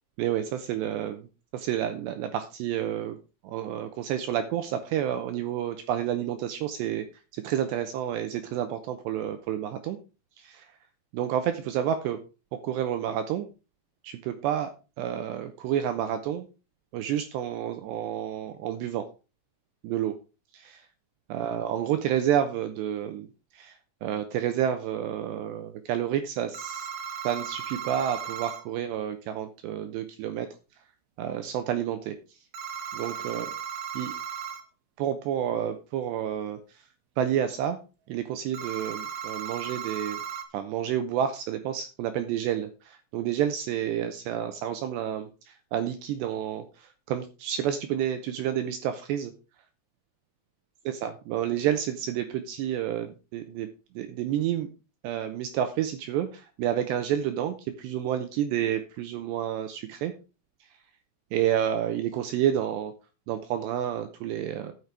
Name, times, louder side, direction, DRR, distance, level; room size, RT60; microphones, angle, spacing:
voice 1, 0.2-1.3 1.5-3.2 3.4-7.1 7.3-10.0 10.4-10.7 11.1-12.2 12.5-13.5 14.0-16.5 16.9-19.1 19.8-20.2 20.5-20.9 21.3-23.3 23.5-26.9 27.2-30.5 31.2-32.4 32.9-33.5 33.9-34.1 35.0-36.9 37.2-37.8 38.1-40.2 40.5-49.3 51.0-53.7 54.0-54.7 55.0-60.1 60.6-60.7 61.3-62.9 63.3-64.7, right 10 dB, 90° right, 9 dB, 2.5 m, -30 dB
sound 1, 26.5-28.6 32.5-34.6 38.5-40.4, right 8 dB, 70° right, 2.5 m, -36 dB
12.5 x 6.8 x 4.7 m, 0.32 s
omnidirectional pair, 5.9 m